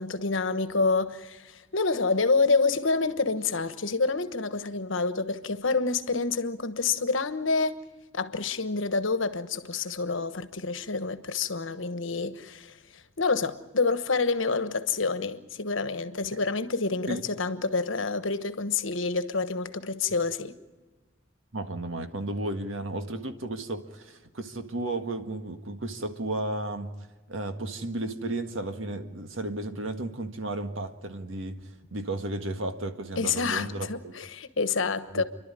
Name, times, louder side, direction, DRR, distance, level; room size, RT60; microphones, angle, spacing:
voice 1, 0.0-7.7 8.1-20.6 33.2-35.2, left 4 dB, 75° left, 1.2 m, -28 dB
voice 2, 21.5-26.9 27.3-34.1 35.1-35.2, right 2 dB, 80° right, 1.8 m, -33 dB
30.0 x 12.0 x 9.9 m
head